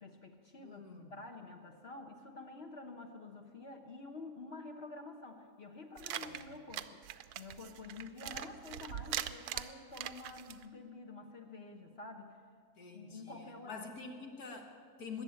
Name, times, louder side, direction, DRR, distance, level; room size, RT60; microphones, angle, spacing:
voice 1, 0.0-12.4 12.9-13.9, left 3 dB, 40° left, 3 dB, 1.3 m, -49 dB
voice 2, 0.6-1.1 6.2-6.4 12.8-15.2, left 5 dB, 65° left, 3 dB, 2.1 m, -47 dB
sound 1, 6.0-10.6, right 11 dB, 75° right, 1.1 m, -42 dB
20.5 x 7.4 x 8.9 m, 2.1 s
omnidirectional pair, 1.7 m